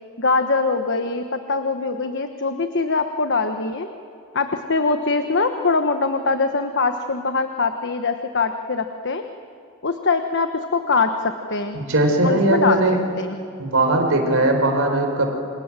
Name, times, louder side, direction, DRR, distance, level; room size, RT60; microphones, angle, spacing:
voice 1, 0.2-3.9 4.3-9.2 9.8-11.8 12.2-12.8 13.2-13.4, left 4 dB, 55° left, 7 dB, 1.2 m, -22 dB
voice 2, 11.7-13.0 13.6-15.3, right 2 dB, 60° right, 4 dB, 4.8 m, -19 dB
29.0 x 26.5 x 7.6 m, 2.7 s
head